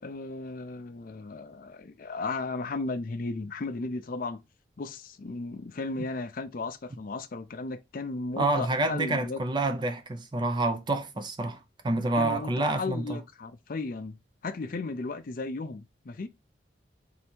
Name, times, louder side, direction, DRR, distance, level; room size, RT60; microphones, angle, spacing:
voice 1, 0.0-4.4 4.8-9.4 12.1-12.5 12.8-14.2 14.4-16.3, left 3 dB, 50° left, 0.5 m, -35 dB
voice 2, 8.4-13.2, right 2 dB, 25° right, 0.6 m, -28 dB
3.3 x 2.7 x 4.3 m
head